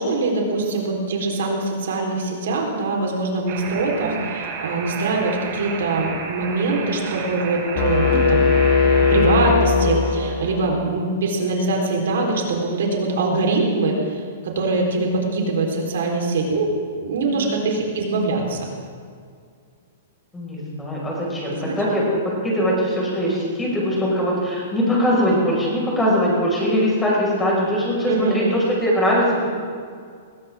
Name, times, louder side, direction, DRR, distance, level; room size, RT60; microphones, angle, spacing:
voice 1, 0.0-8.5 8.8-16.7 17.0-18.7 21.5-21.8 28.0-28.4, right 3 dB, 75° right, 0 dB, 4.1 m, -23 dB
sound 1, 3.5-9.5, right 5 dB, 40° right, 2.7 m, -32 dB
sound 2, 7.8-10.7, left 4 dB, 40° left, 2.5 m, -18 dB
voice 2, 20.3-29.5, equal, 10° left, -4 dB, 5.6 m, -21 dB
20.5 x 17.0 x 3.7 m, 2.1 s
hypercardioid pair, 155°, 0 cm